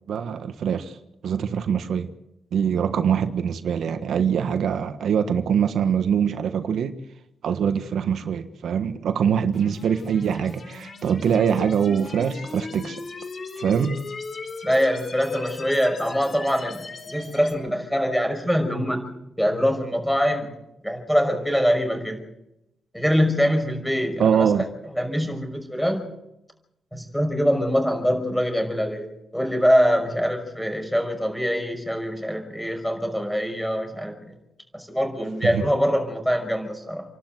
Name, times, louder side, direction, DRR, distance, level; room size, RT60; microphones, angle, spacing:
voice 1, 0.1-1.0 1.2-2.1 2.5-6.9 7.4-13.0 13.6-14.0 24.2-24.6 35.4-35.6, right 7 dB, 75° right, 9 dB, 1.4 m, -23 dB
sound 1, 9.5-17.5, left 3 dB, 45° left, 4.5 m, -37 dB
voice 2, 14.6-19.1 19.4-20.5 20.8-22.2 22.9-24.6 24.9-26.0 26.9-34.2 34.7-37.0, equal, 5° left, 5 dB, 5.7 m, -23 dB
29.0 x 12.0 x 8.0 m, 0.86 s
cardioid pair, 115°, 0 cm